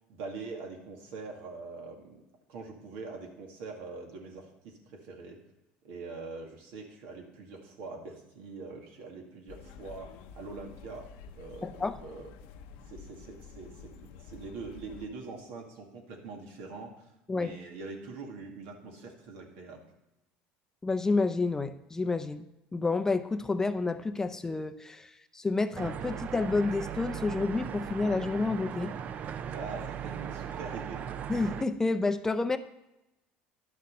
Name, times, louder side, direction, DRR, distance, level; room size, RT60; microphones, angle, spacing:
voice 1, 0.1-2.2 2.5-5.4 5.8-12.3 12.9-19.8 29.5-31.0, right 3 dB, 75° right, 2 dB, 2.3 m, -43 dB
sound 1, 9.5-15.1, left 6 dB, 75° left, 0.8 m, -49 dB
voice 2, 11.6-12.0 17.3-17.5 20.8-22.5 22.7-28.9 31.3-32.6, left 3 dB, 15° left, 10 dB, 0.5 m, -29 dB
sound 2, 25.8-31.7, right 8 dB, 45° right, 0.5 m, -38 dB
11.0 x 6.5 x 5.5 m, 0.93 s
supercardioid pair, 115°, 4 cm